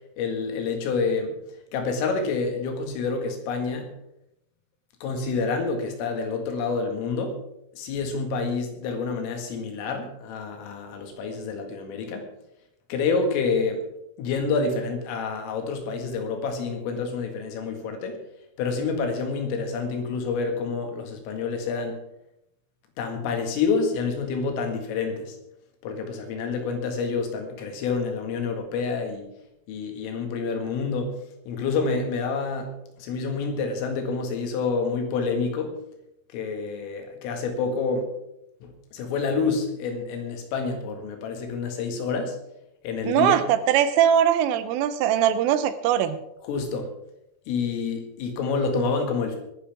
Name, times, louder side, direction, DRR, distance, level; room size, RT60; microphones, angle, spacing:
voice 1, 0.2-1.4 1.7-3.9 5.0-7.4 7.7-12.3 12.9-13.8 14.2-18.2 18.6-22.0 23.0-25.4 25.8-29.3 29.7-31.1 31.5-32.7 33.0-35.8 36.3-38.1 38.6-42.4 42.8-43.4 46.4-46.9 47.5-49.4, left 4 dB, 80° left, 4 dB, 4.5 m, -28 dB
voice 2, 43.1-46.2, right 10 dB, 80° right, 12 dB, 3.3 m, -21 dB
21.0 x 10.5 x 3.6 m, 0.83 s
omnidirectional pair, 5.8 m